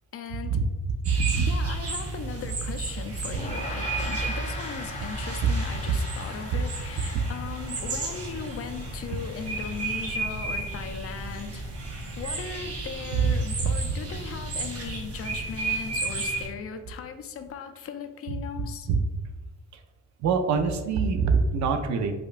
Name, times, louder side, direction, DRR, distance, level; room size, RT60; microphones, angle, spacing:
voice 1, 0.1-0.6 1.3-11.6 12.2-18.9, left 7 dB, 50° left, 7 dB, 0.4 m, -38 dB
sound 1, 1.0-16.5, right 3 dB, 50° right, 0.8 m, -33 dB
voice 2, 1.1-1.4 5.4-5.5 13.1-13.3 13.6-13.7 18.9-19.0 20.2-22.1, right 6 dB, 70° right, 6 dB, 0.5 m, -24 dB
Gong, 3.3-12.8, left 3 dB, 25° left, 0.7 m, -42 dB
5.0 x 2.2 x 2.4 m, 1.2 s
cardioid pair, 90°, 30 cm